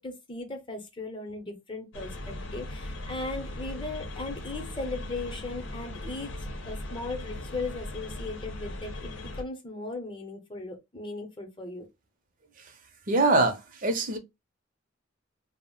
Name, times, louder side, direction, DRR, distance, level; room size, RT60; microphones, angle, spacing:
voice 1, 0.0-11.8, left 3 dB, 25° left, 0.7 m, -37 dB
sound 1, 1.9-9.4, left 1 dB, 90° left, 0.8 m, -38 dB
voice 2, 13.1-14.2, right 2 dB, 45° right, 0.6 m, -23 dB
2.3 x 2.0 x 3.7 m
head